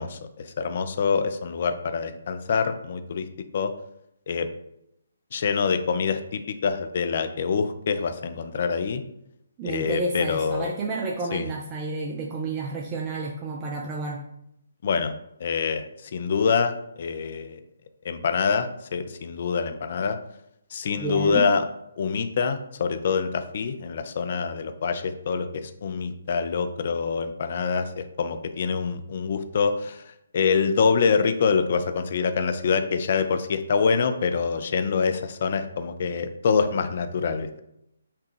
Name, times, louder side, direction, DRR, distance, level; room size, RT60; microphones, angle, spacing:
voice 1, 0.0-3.3 3.5-3.7 4.3-4.5 5.3-9.0 9.6-10.7 11.3-11.5 14.8-15.1 15.4-17.6 18.0-20.2 20.7-21.7 22.0-37.6, left 5 dB, 50° left, 9 dB, 0.4 m, -25 dB
voice 2, 9.6-14.2 21.0-21.4, right 3 dB, 25° right, -1 dB, 0.5 m, -30 dB
5.8 x 2.3 x 3.2 m, 0.80 s
figure-of-eight pair, 140°, 0 cm